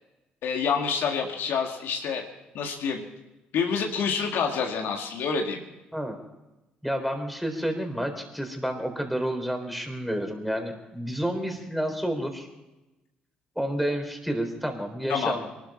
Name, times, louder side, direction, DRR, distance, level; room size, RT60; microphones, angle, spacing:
voice 1, 0.4-2.2 2.5-3.0 3.5-5.6 15.1-15.3, left 6 dB, 65° left, 2 dB, 2.0 m, -27 dB
voice 2, 6.8-12.5 13.6-15.5, equal, ahead, 4 dB, 4.0 m, -30 dB
23.0 x 12.5 x 4.4 m, 1.0 s
hypercardioid pair, 50°, 4 cm